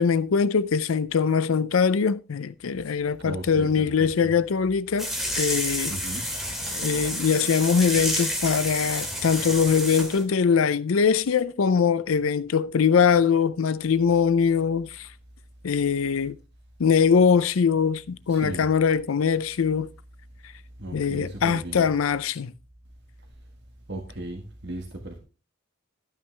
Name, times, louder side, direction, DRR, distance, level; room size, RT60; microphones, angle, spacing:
voice 1, 0.0-5.1 5.4-6.0 6.7-15.1 15.6-16.4 16.8-19.9 20.9-22.5, left 6 dB, 75° left, 0.5 m, -22 dB
voice 2, 3.2-3.9 5.9-6.4 18.3-18.6 20.8-21.9 23.9-25.2, right 1 dB, 50° right, 1.5 m, -36 dB
sound 1, 5.0-10.2, equal, ahead, 2.2 m, -30 dB
12.0 x 9.0 x 3.3 m
head